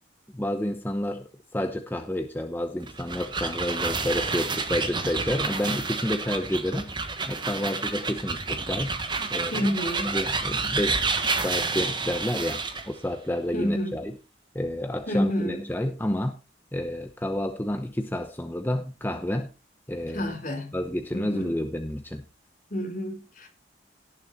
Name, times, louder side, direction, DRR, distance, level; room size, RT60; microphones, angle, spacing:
voice 1, 0.3-6.9 7.3-8.9 9.3-9.7 10.1-11.0 11.4-14.2 14.5-16.4 16.7-19.5 19.9-20.3 20.7-22.2, left 1 dB, 10° left, 0.8 m, -30 dB
sound 1, 2.8-12.9, right 4 dB, 25° right, 1.3 m, -29 dB
voice 2, 9.5-10.2 13.5-13.9 15.1-15.6 20.1-20.8 21.1-21.5 22.7-23.5, equal, 45° left, 3.6 m, -28 dB
17.5 x 7.2 x 4.0 m
head